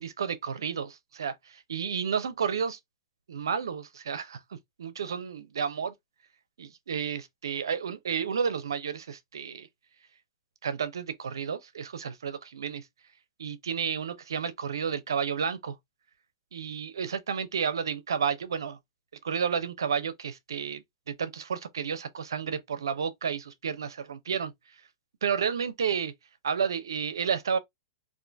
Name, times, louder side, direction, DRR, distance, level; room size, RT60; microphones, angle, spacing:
voice 1, 0.0-2.8 3.3-5.9 6.6-9.7 10.6-12.9 13.4-15.7 16.5-18.8 19.2-24.5 25.2-26.1 26.4-27.6, right 7 dB, 90° right, 0.6 m, -31 dB
2.6 x 2.5 x 3.2 m
hypercardioid pair, 130°, 2 cm